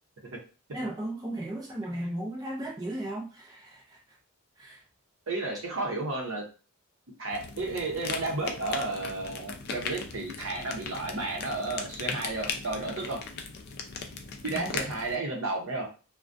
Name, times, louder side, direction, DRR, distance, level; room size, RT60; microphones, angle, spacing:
voice 1, 0.7-4.2 4.6-4.8 14.5-14.9, right 1 dB, 15° right, -3 dB, 0.5 m, -36 dB
voice 2, 5.3-6.4 7.2-13.2 14.4-15.9, right 2 dB, 65° right, 1 dB, 0.7 m, -32 dB
sound 1, 7.3-15.2, left 5 dB, 45° left, 0.3 m, -38 dB
2.3 x 2.1 x 2.5 m, 0.35 s
head